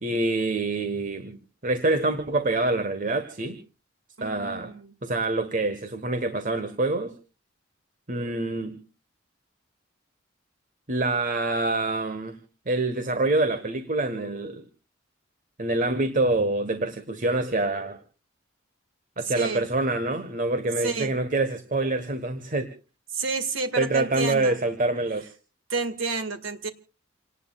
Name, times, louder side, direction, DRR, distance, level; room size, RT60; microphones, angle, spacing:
voice 1, 0.0-1.4 1.6-3.6 4.2-4.7 5.0-7.1 8.1-8.8 10.9-12.4 12.7-14.6 15.6-18.0 19.2-22.7 23.8-25.3, right 2 dB, 40° right, 10 dB, 1.3 m, -26 dB
voice 2, 4.2-4.9 19.3-19.7 20.8-21.1 23.1-24.6 25.7-26.7, right 4 dB, 75° right, 9 dB, 2.0 m, -30 dB
28.5 x 18.5 x 2.4 m, 0.35 s
head